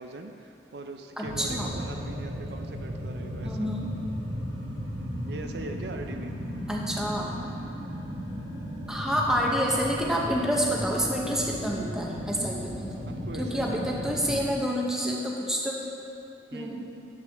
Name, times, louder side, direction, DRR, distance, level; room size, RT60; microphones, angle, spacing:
voice 1, 0.0-3.7 5.2-6.3 13.0-14.1 14.3-14.5 16.5-16.9, right 2 dB, 70° right, 5 dB, 0.5 m, -41 dB
voice 2, 1.2-1.7 3.4-3.9 6.7-7.3 8.9-12.9 13.4-15.8 16.5-16.9, equal, 5° right, -2 dB, 0.8 m, -28 dB
sound 1, 1.2-14.5, equal, 90° right, 1.4 m, -35 dB
11.0 x 8.1 x 3.5 m, 2.7 s
head